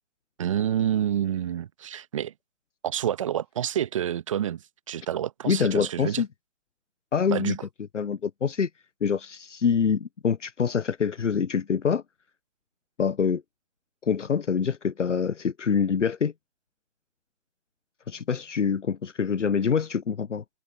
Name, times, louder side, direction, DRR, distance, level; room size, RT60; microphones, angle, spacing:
voice 1, 0.4-2.3 2.8-6.2 7.3-7.6, right 10 dB, 25° right, 1.3 m, -28 dB
voice 2, 5.4-6.3 7.1-7.6 7.9-8.7 9.0-12.0 13.0-13.4 14.0-16.3 18.1-20.4, left 6 dB, 75° left, 0.8 m, -25 dB
open air
figure-of-eight pair, 150°, 36 cm